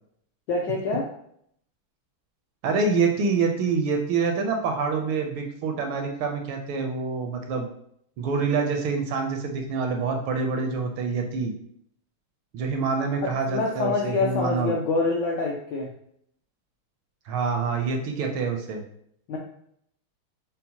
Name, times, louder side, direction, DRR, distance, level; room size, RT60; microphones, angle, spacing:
voice 1, 0.5-1.1 13.2-15.9 19.3-19.4, left 3 dB, 80° left, -1 dB, 1.0 m, -26 dB
voice 2, 2.6-7.7 8.2-11.5 12.5-14.7 17.3-18.8, right 4 dB, 80° right, 4 dB, 1.4 m, -26 dB
5.6 x 2.0 x 2.7 m, 0.70 s
omnidirectional pair, 2.4 m